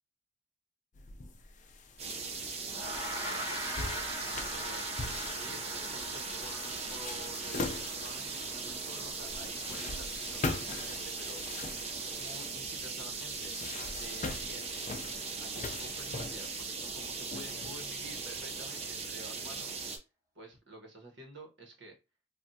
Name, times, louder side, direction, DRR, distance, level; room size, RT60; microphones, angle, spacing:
sound 1, 1.0-18.4, left 3 dB, 45° left, 0.5 m, -43 dB
sound 2, 2.0-20.0, right 4 dB, 35° right, 0.6 m, -39 dB
Gong, 2.7-12.3, equal, 15° right, 1.0 m, -43 dB
voice 1, 3.1-4.9 5.4-11.4 11.9-13.6 13.9-14.7 15.4-19.8 20.3-22.0, right 1 dB, 85° right, 2 dB, 1.1 m, -51 dB
3.3 x 2.3 x 2.7 m, 0.27 s
head